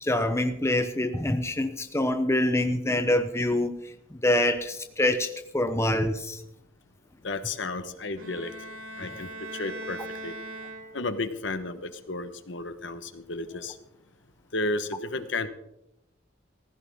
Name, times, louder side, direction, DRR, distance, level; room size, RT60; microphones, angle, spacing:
voice 1, 0.0-3.7 4.1-6.4, left 1 dB, 15° left, 7 dB, 0.8 m, -25 dB
voice 2, 7.2-8.5 9.0-10.3 10.9-13.8 14.5-15.5, left 2 dB, 65° left, 10 dB, 1.2 m, -33 dB
Bowed string instrument, 8.2-11.3, right 1 dB, 85° right, 3.8 m, -40 dB
18.5 x 15.5 x 3.6 m, 0.81 s
head